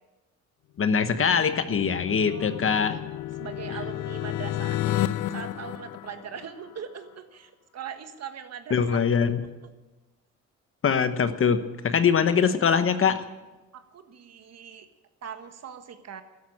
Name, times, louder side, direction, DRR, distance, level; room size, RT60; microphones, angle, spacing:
voice 1, 0.8-3.0 8.7-9.4 10.8-13.2, left 6 dB, 45° left, 10 dB, 1.2 m, -23 dB
sound 1, 1.1-6.8, left 13 dB, 75° left, 0.6 m, -32 dB
voice 2, 2.1-2.7 3.4-5.0 5.3-9.4 13.7-14.9 15.2-16.2, right 7 dB, 55° right, 8 dB, 1.6 m, -41 dB
13.0 x 11.5 x 8.7 m, 1.1 s
cardioid pair, 90°, 30 cm